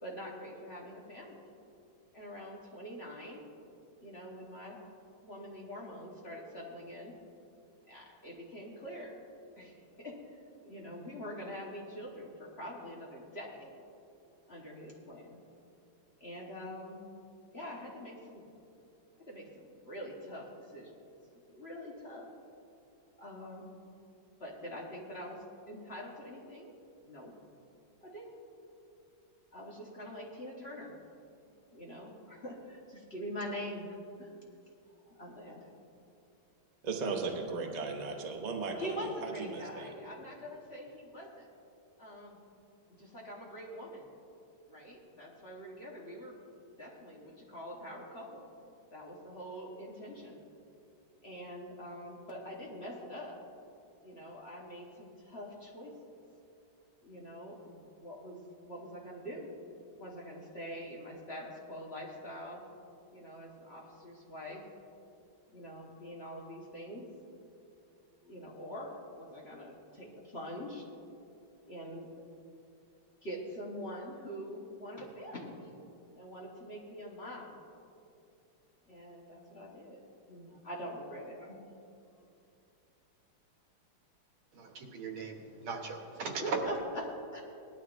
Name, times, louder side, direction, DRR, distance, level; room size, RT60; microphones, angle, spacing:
voice 1, 0.0-1.4 2.1-3.4 4.0-4.8 5.2-7.2 7.9-9.2 9.5-10.4 10.6-13.8 14.5-15.4 16.2-17.1 17.5-18.4 19.2-20.9 21.5-22.3 22.5-22.6 23.2-23.7 24.4-26.7 27.1-27.4 28.0-28.3 29.5-30.9 31.7-34.3 35.0-35.7 38.8-41.5 42.0-42.4 43.0-44.1 44.7-46.4 46.8-48.4 48.9-50.4 51.2-53.4 54.0-55.9 57.0-58.4 58.6-59.5 60.0-62.7 63.1-64.7 65.5-67.1 68.2-70.9 71.7-72.1 73.2-75.8 76.1-77.6 78.9-81.6 86.2-87.4, equal, 35° left, -3 dB, 1.3 m, -44 dB
voice 2, 36.8-38.9 39.2-39.9, right 4 dB, 45° right, 1 dB, 0.5 m, -36 dB
voice 3, 84.5-86.6, right 4 dB, 85° right, 2 dB, 2.1 m, -38 dB
18.5 x 11.5 x 2.6 m, 2.6 s
omnidirectional pair, 2.3 m